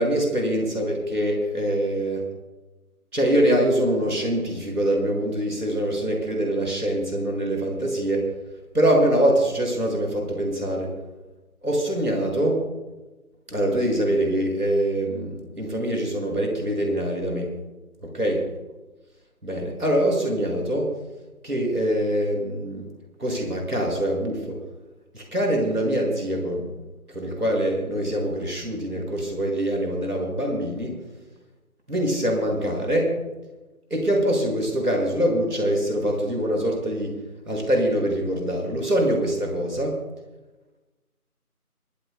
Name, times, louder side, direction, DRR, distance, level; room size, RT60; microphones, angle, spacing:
voice 1, 0.0-2.2 3.1-8.3 8.7-10.9 11.6-12.6 13.5-17.5 18.0-18.5 19.4-20.9 21.4-22.9 23.2-24.6 25.1-26.7 27.1-30.9 31.9-33.1 33.9-37.1 37.5-40.0, right 1 dB, 80° right, 0 dB, 6.4 m, -24 dB
27.0 x 14.0 x 2.3 m, 1.1 s
figure-of-eight pair, 170°, 45 cm